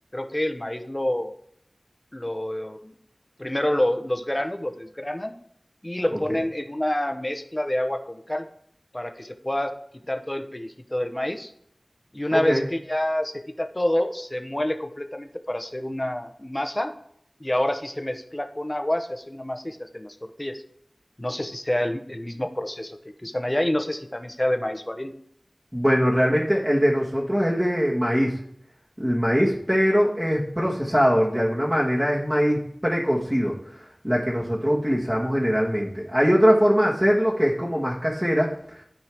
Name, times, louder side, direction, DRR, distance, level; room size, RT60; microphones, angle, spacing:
voice 1, 0.1-1.3 2.1-2.9 3.4-5.3 5.8-8.5 8.9-9.7 10.1-11.5 12.1-16.9 17.4-20.6 21.2-25.2, left 1 dB, 25° left, 7 dB, 0.8 m, -28 dB
voice 2, 12.3-12.6 25.7-28.4 29.0-38.8, equal, 20° right, -4 dB, 1.6 m, -22 dB
12.5 x 4.6 x 3.5 m, 0.69 s
wide cardioid pair, 45°, 0 cm